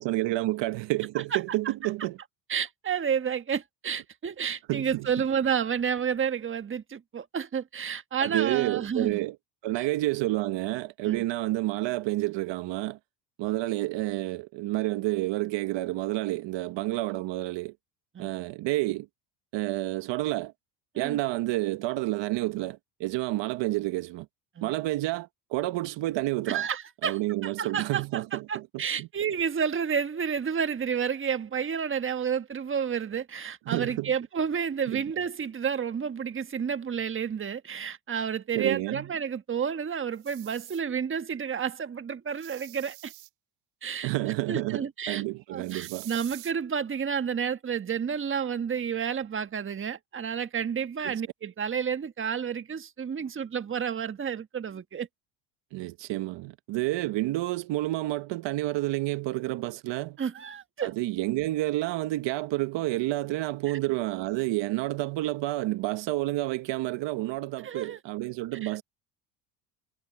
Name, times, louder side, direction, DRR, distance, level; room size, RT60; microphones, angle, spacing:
voice 1, 0.0-2.2 4.7-5.1 8.2-9.4 9.6-13.0 13.4-17.7 18.2-19.1 19.5-20.5 21.0-24.3 24.6-26.7 27.0-28.7 29.0-29.1 33.7-34.1 34.9-35.0 38.5-39.0 44.0-46.1 51.0-51.1 55.7-60.2 60.8-68.8, right 17 dB, 60° right, 1.3 m, -29 dB
voice 2, 2.5-9.2 9.7-9.9 11.0-11.2 18.1-18.4 20.9-21.2 24.6-24.7 26.5-43.1 43.8-44.1 44.5-45.2 45.5-55.1 60.2-60.9 63.7-63.8 67.6-68.0 68.6-68.7, right 7 dB, 25° right, 1.3 m, -30 dB
sound 1, 40.1-40.8 42.3-43.3 45.6-46.5, right 33 dB, 85° right, 5.6 m, -46 dB
supercardioid pair, 95°, 49 cm